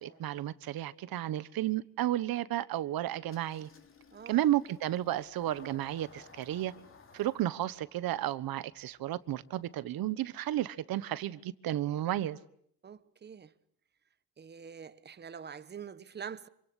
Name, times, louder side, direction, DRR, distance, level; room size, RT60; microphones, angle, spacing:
voice 1, 0.0-3.7 4.3-6.7 7.1-12.4, right 13 dB, 75° right, 1.3 m, -32 dB
Engine starting, 3.3-10.6, left 5 dB, 35° left, 3.6 m, -59 dB
voice 2, 4.1-4.5 12.8-13.5 14.4-16.5, right 7 dB, 30° right, 1.1 m, -45 dB
27.5 x 26.0 x 8.3 m
cardioid pair, 160°, 35 cm